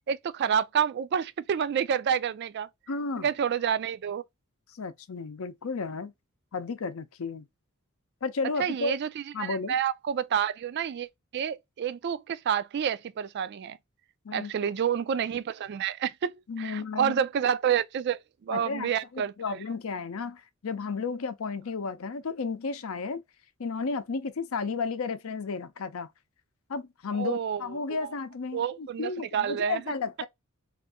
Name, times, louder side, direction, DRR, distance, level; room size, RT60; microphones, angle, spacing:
voice 1, 0.1-2.7 3.2-4.2 8.6-11.1 11.3-13.8 14.3-19.6 27.2-28.1 28.5-29.8, right 8 dB, 50° right, 0.3 m, -29 dB
voice 2, 2.9-3.3 4.7-6.1 6.5-7.5 8.2-9.0 9.3-9.8 14.2-14.7 16.5-17.2 18.5-23.2 23.6-26.1 26.7-30.3, left 4 dB, 75° left, 0.6 m, -33 dB
2.6 x 2.5 x 3.5 m
head